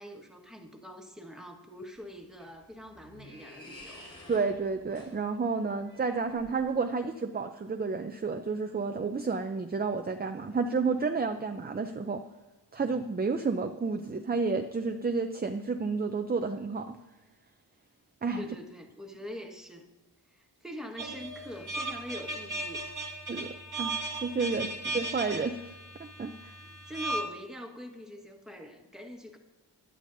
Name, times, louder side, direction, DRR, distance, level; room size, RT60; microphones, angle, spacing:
voice 1, 0.0-4.1 18.4-19.9 20.3-23.2 24.5-24.8 26.9-29.4, equal, ahead, 2 dB, 1.4 m, -44 dB
sound 1, 2.0-6.9, left 1 dB, 50° left, 3.4 m, -52 dB
voice 2, 4.3-12.2 12.7-17.0 18.2-18.4 23.3-25.6 26.2-26.5, right 4 dB, 25° right, 6 dB, 0.5 m, -31 dB
sound 2, 21.0-27.2, right 2 dB, 45° right, 1.4 m, -37 dB
17.5 x 11.0 x 2.7 m, 1.1 s
wide cardioid pair, 110°, 42 cm